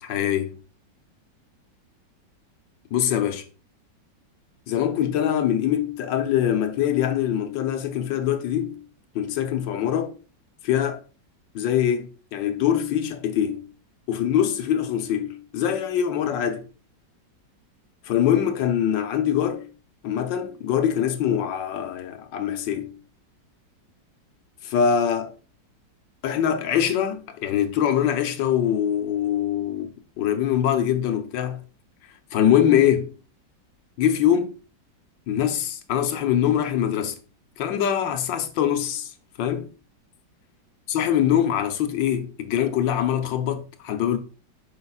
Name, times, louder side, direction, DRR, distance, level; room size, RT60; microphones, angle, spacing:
voice 1, 0.0-0.6 2.9-3.5 4.7-8.8 9.1-10.2 10.6-11.0 11.5-13.7 14.1-16.7 18.0-19.7 20.0-23.0 24.6-25.3 26.2-31.6 32.3-33.1 34.0-34.5 35.3-37.2 37.6-39.1 39.4-39.7 40.9-44.2, left 9 dB, 80° left, 1.5 m, -23 dB
9.5 x 6.3 x 2.4 m
omnidirectional pair, 2.0 m